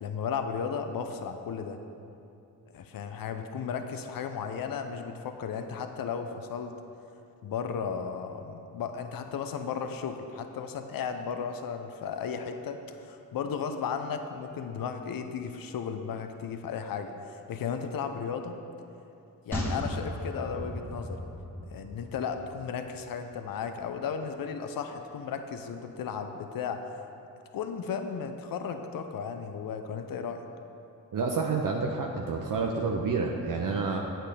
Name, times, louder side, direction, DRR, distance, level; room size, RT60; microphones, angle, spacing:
voice 1, 0.0-1.8 2.7-6.7 7.4-18.5 19.5-21.2 21.7-26.9 27.5-30.4, left 6 dB, 55° left, 7 dB, 0.7 m, -35 dB
sound 1, 19.5-23.0 23.2-23.3, left 1 dB, 5° left, 1.6 m, -36 dB
voice 2, 31.1-34.0, right 4 dB, 50° right, 1 dB, 0.8 m, -29 dB
8.2 x 3.9 x 6.7 m, 2.7 s
supercardioid pair, 50°, 41 cm